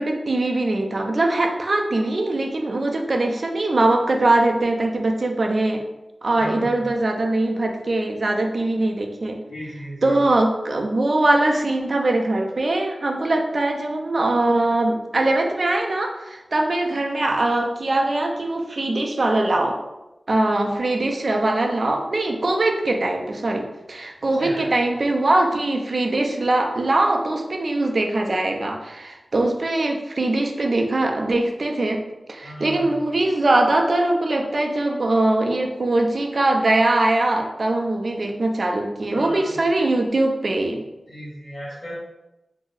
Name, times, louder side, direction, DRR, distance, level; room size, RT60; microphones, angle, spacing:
voice 1, 0.0-5.8 6.2-9.4 10.0-19.8 20.3-32.0 32.3-40.8, right 2 dB, 55° right, 2 dB, 0.4 m, -22 dB
voice 2, 6.4-6.9 9.5-10.2 24.3-24.7 32.4-33.0 39.1-39.9 41.1-42.0, equal, 75° left, -6 dB, 1.0 m, -36 dB
2.6 x 2.0 x 3.8 m, 0.96 s
wide cardioid pair, 80°, 0 cm